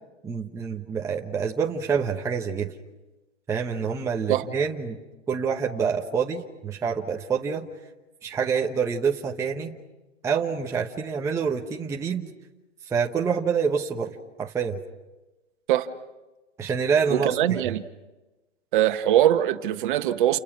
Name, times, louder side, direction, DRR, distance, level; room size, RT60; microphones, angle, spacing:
voice 1, 0.2-2.7 3.5-5.0 5.3-7.7 8.2-9.8 10.2-12.3 12.8-14.8 16.6-17.4, right 6 dB, 10° right, 1.1 m, -27 dB
voice 2, 17.1-17.8 18.7-20.4, right 12 dB, 45° right, 1.6 m, -22 dB
30.0 x 29.5 x 6.1 m
hypercardioid pair, 145°, 36 cm